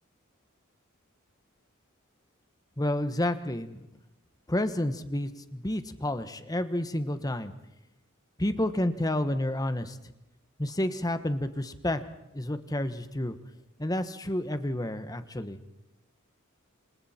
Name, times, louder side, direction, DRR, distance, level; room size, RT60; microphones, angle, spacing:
voice 1, 2.8-3.8 4.5-7.5 8.4-10.0 10.6-12.0 12.3-13.4 13.8-15.6, left 1 dB, 15° left, 10 dB, 1.3 m, -30 dB
27.5 x 26.5 x 4.4 m, 0.89 s
head